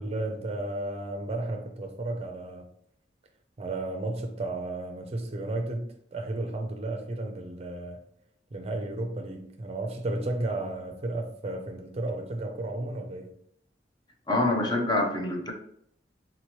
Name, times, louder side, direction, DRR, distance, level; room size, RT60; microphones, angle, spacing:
voice 1, 0.0-2.7 3.6-8.0 8.5-13.3, right 2 dB, 35° right, 0.5 m, -33 dB
voice 2, 14.3-15.5, left 2 dB, 25° left, 0.7 m, -26 dB
3.9 x 3.0 x 3.0 m
head